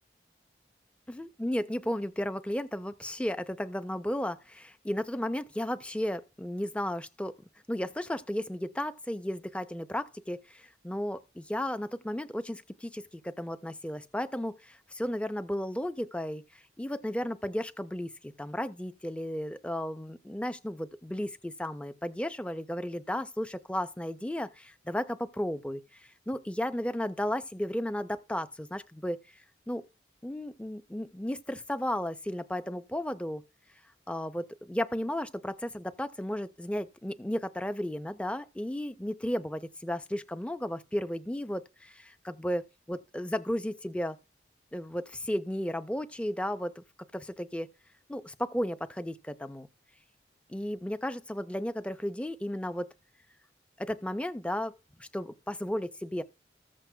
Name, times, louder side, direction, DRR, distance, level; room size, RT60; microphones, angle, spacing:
voice 1, 1.1-7.3 7.7-29.4 29.7-29.8 30.2-33.4 34.1-44.2 44.7-46.8 47.1-47.7 48.1-49.7 50.5-52.9 53.8-54.7 55.0-56.2, left 1 dB, 5° left, 0.5 m, -34 dB
14.5 x 7.5 x 2.2 m
head